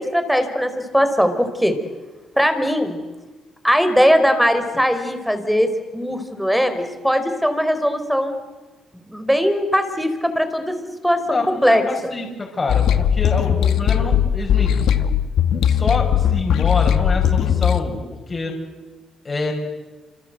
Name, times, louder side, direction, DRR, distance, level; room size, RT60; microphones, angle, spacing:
voice 1, 0.0-1.7 2.4-3.0 3.6-5.7 5.9-8.4 8.9-10.7 11.0-12.1, equal, ahead, 9 dB, 4.4 m, -19 dB
voice 2, 11.3-14.8 15.6-18.6 19.2-19.5, left 3 dB, 30° left, 0 dB, 5.9 m, -26 dB
sound 1, 12.7-17.8, left 9 dB, 75° left, 1.5 m, -18 dB
28.0 x 26.5 x 8.0 m, 1.2 s
cardioid pair, 90°, 0 cm